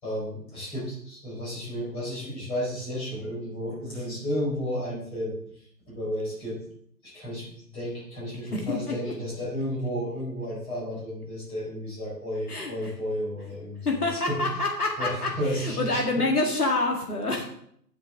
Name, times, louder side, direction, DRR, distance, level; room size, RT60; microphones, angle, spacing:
voice 1, 0.0-6.6 7.0-14.7 15.0-16.2 17.3-17.5, equal, 10° left, -6 dB, 4.5 m, -33 dB
voice 2, 8.6-9.0 12.5-12.7 13.9-17.4, left 2 dB, 60° left, 0 dB, 2.2 m, -27 dB
16.5 x 7.3 x 3.7 m, 0.67 s
figure-of-eight pair, 145°, 50 cm